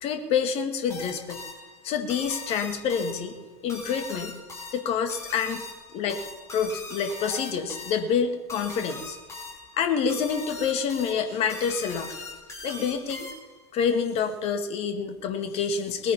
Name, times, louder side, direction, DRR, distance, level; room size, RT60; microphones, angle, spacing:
voice 1, 0.0-1.4 1.8-3.3 3.6-4.4 4.7-5.6 5.9-6.2 6.5-9.2 9.7-12.1 12.6-13.3 13.7-16.1, left 6 dB, 40° left, 7 dB, 2.1 m, -27 dB
sound 1, 0.9-13.7, left 2 dB, 20° left, 4.7 m, -41 dB
20.5 x 9.4 x 5.7 m, 1.2 s
figure-of-eight pair, 85°, 15 cm